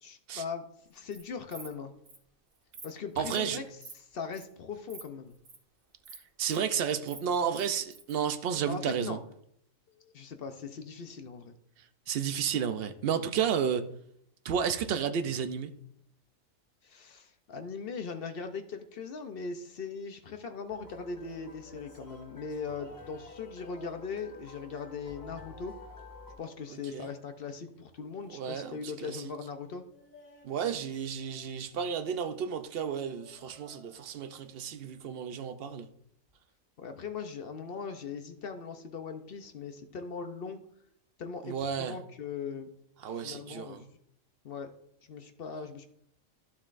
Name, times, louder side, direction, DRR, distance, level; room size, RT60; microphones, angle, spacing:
voice 1, 0.0-1.9 2.8-3.7 3.9-5.4 8.7-9.2 9.9-11.6 16.8-25.8 26.4-29.9 36.8-40.6 41.2-42.7 43.1-43.9 44.4-44.7 45.1-45.9, left 5 dB, 55° left, 0.7 m, -40 dB
Insect, 0.9-1.2 1.5-1.7 2.1-2.2 2.5-2.9 3.3-3.5 3.8-4.0 4.3-4.5 4.9-5.0 5.3-5.6 6.0-6.6 6.9-8.2, right 4 dB, 85° right, 1.9 m, -48 dB
voice 2, 3.2-3.6 6.4-9.2 12.1-13.9 14.4-15.7 26.9-27.1 28.3-29.3 30.4-35.9 41.4-42.0 43.0-43.8, right 7 dB, 60° right, 0.7 m, -32 dB
sound 1, 20.7-26.4, left 3 dB, 15° left, 1.5 m, -51 dB
sound 2, 21.2-24.5 25.0-26.0 26.3-27.9 29.9-32.1 33.0-34.5 34.8-35.2 36.3-36.4, left 1 dB, 80° left, 3.3 m, -58 dB
12.0 x 7.2 x 2.5 m
omnidirectional pair, 1.4 m